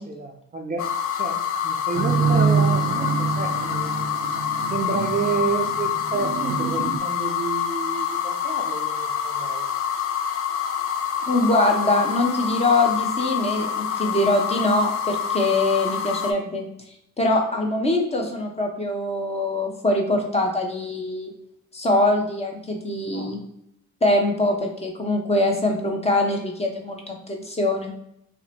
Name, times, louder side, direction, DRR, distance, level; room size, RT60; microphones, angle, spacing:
voice 1, 0.0-4.0 4.7-9.7 23.1-23.4, right 4 dB, 25° right, 1 dB, 0.4 m, -30 dB
sound 1, 0.8-16.3, left 8 dB, 50° left, 0.5 m, -27 dB
sound 2, 1.9-7.0, right 6 dB, 85° right, 0.5 m, -25 dB
voice 2, 11.3-16.6 17.2-21.3 21.7-23.4 24.0-27.9, left 2 dB, 20° left, 1 dB, 0.8 m, -23 dB
2.8 x 2.1 x 4.1 m, 0.75 s
cardioid pair, 90°, 30 cm